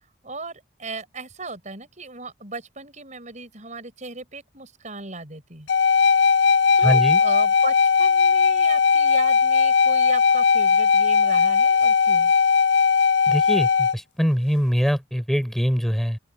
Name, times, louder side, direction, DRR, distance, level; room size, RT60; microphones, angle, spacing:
voice 1, 0.2-5.7 6.8-12.3, right 3 dB, 40° right, 7.4 m, -37 dB
sound 1, 5.7-13.9, left 5 dB, 70° left, 0.7 m, -18 dB
voice 2, 6.8-7.2 13.3-16.2, equal, ahead, 5.9 m, -23 dB
open air
head